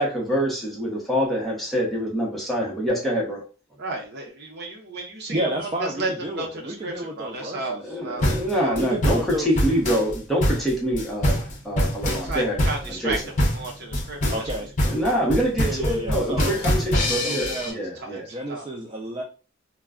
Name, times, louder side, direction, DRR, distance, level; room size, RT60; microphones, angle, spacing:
voice 1, 0.0-3.4 7.8-12.6 12.9-13.2 14.8-18.3, equal, ahead, -4 dB, 0.8 m, -25 dB
voice 2, 3.8-6.1 6.3-8.8 11.4-11.5 12.2-13.2 13.5-14.4 14.8-14.9 17.5-18.6, right 2 dB, 55° right, 1 dB, 0.8 m, -33 dB
voice 3, 5.3-8.0 8.7-9.5 14.3-14.7 15.6-16.6 17.2-17.8 18.3-19.2, right 1 dB, 25° right, 0 dB, 0.4 m, -31 dB
sound 1, 8.2-17.7, equal, 40° left, 0.7 m, -24 dB
2.2 x 2.2 x 3.5 m, 0.35 s
head